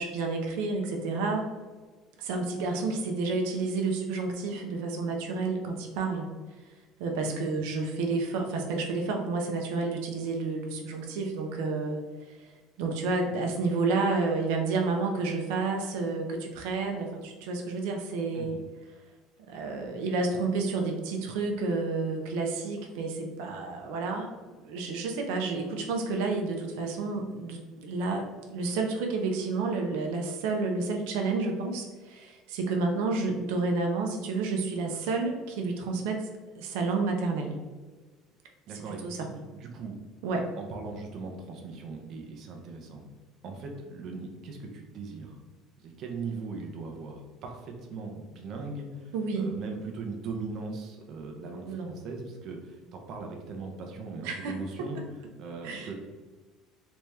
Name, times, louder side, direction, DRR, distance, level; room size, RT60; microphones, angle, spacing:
voice 1, 0.0-1.5 2.2-6.3 7.0-12.0 12.8-18.6 19.5-36.3 36.6-37.6 39.0-39.3 40.2-40.4 49.1-49.5 51.5-51.9 54.2-54.5 54.9-55.0 55.6-55.9, right 3 dB, 85° right, 2 dB, 0.6 m, -30 dB
voice 2, 38.6-40.0 40.6-43.1 43.4-45.4 45.8-55.0 55.4-55.9, right 4 dB, 45° right, 2 dB, 0.6 m, -39 dB
3.4 x 2.8 x 3.2 m, 1.3 s
cardioid pair, 155°, 0 cm